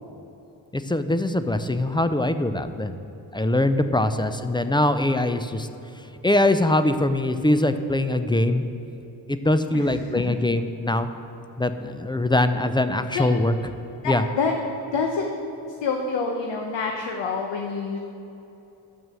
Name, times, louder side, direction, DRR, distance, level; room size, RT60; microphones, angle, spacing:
voice 1, 0.7-2.9 3.3-5.7 6.2-8.6 9.3-11.1 11.6-13.5 14.0-14.2, left 1 dB, 10° left, 10 dB, 0.5 m, -22 dB
voice 2, 9.7-10.4 13.1-13.2 14.0-14.5 14.9-15.2 15.8-18.0, left 5 dB, 65° left, 2 dB, 1.0 m, -27 dB
9.1 x 6.2 x 6.2 m, 3.0 s
supercardioid pair, 50°, 48 cm